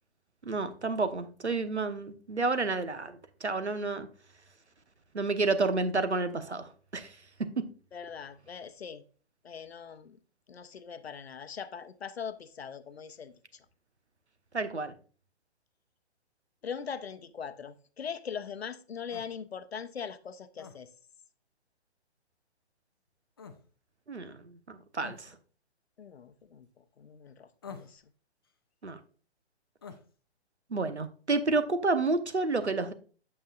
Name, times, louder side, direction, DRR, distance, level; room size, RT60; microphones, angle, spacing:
voice 1, 0.4-4.1 5.1-7.1 7.6-7.7 14.5-14.9 24.1-25.3 28.8-29.0 30.7-32.9, right 3 dB, 85° right, 1.0 m, -30 dB
voice 2, 7.9-9.0 9.4-10.2 10.5-13.3 16.6-20.9 26.0-26.7 27.0-28.0, left 7 dB, 65° left, 0.7 m, -41 dB
sound 1, 19.1-19.3 20.6-20.8 23.4-23.6 25.0-25.2 27.6-28.0 29.8-30.0, left 5 dB, 25° left, 0.4 m, -46 dB
8.7 x 7.2 x 2.4 m
figure-of-eight pair, 130°, 33 cm